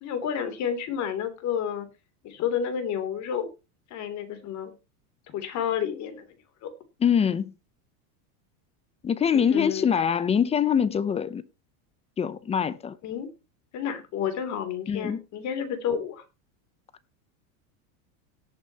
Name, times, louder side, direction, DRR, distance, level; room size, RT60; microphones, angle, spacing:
voice 1, 0.0-1.9 2.2-3.5 3.9-4.7 5.3-6.2 6.6-6.7 9.3-9.9 13.0-13.3 13.7-16.2, left 8 dB, 40° left, 3.1 m, -30 dB
voice 2, 7.0-7.5 9.0-11.4 12.2-12.9 14.9-15.2, left 7 dB, 15° left, 0.6 m, -24 dB
17.0 x 9.0 x 2.9 m
supercardioid pair, 145°, 45 cm